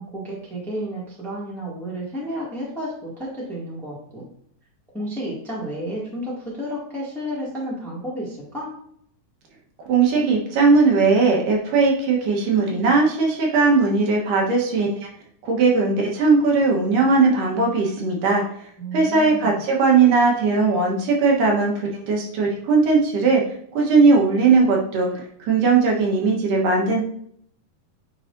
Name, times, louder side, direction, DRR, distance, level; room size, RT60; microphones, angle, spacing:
voice 1, 0.0-4.3 4.9-8.7 18.8-19.6, equal, ahead, -5 dB, 1.0 m, -31 dB
voice 2, 9.9-15.1 15.4-18.4 18.9-23.4 23.7-27.0, right 4 dB, 70° right, -1 dB, 2.6 m, -18 dB
9.6 x 4.0 x 2.6 m, 0.66 s
omnidirectional pair, 4.0 m